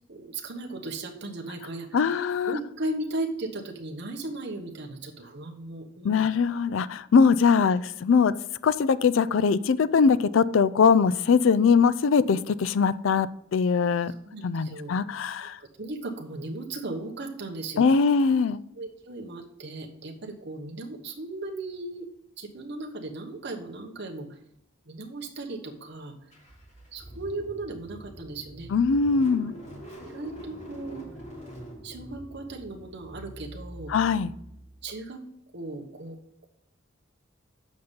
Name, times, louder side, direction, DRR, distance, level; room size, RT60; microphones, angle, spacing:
voice 1, 0.1-6.3 9.5-9.6 14.1-14.9 15.4-17.9 18.8-22.1 22.4-24.4 24.8-26.1 26.9-28.7 30.0-31.1 31.8-33.9 34.8-35.2 35.5-36.2, right 2 dB, 60° right, 1 dB, 1.2 m, -37 dB
voice 2, 1.9-2.6 6.0-8.3 8.6-14.1 14.4-15.6 17.8-18.6 28.7-29.5 33.9-34.3, left 5 dB, 75° left, 16 dB, 0.4 m, -22 dB
Car / Engine starting, 26.3-35.1, equal, 35° left, 3.1 m, -44 dB
7.9 x 5.5 x 5.2 m, 0.77 s
head